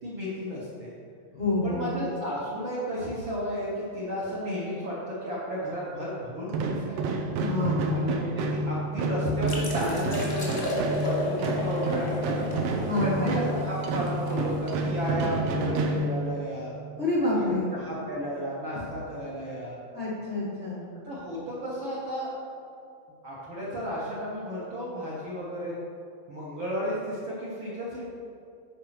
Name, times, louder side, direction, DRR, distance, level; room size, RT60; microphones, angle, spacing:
voice 1, 0.0-0.9 1.6-7.0 7.9-12.6 13.0-16.8 17.3-17.4 17.7-19.8 21.1-22.3 23.2-25.7 26.3-28.1, equal, 60° right, -7 dB, 1.3 m, -33 dB
voice 2, 1.3-1.9 7.4-8.0 12.8-13.3 17.0-17.7 19.9-20.8, left 2 dB, 70° left, -8 dB, 0.6 m, -28 dB
sound 1, 6.5-16.7, right 2 dB, 90° right, 2.6 m, -29 dB
sound 2, 9.5-15.0, left 1 dB, 30° left, 1.0 m, -34 dB
9.3 x 5.0 x 5.9 m, 2.6 s
omnidirectional pair, 4.0 m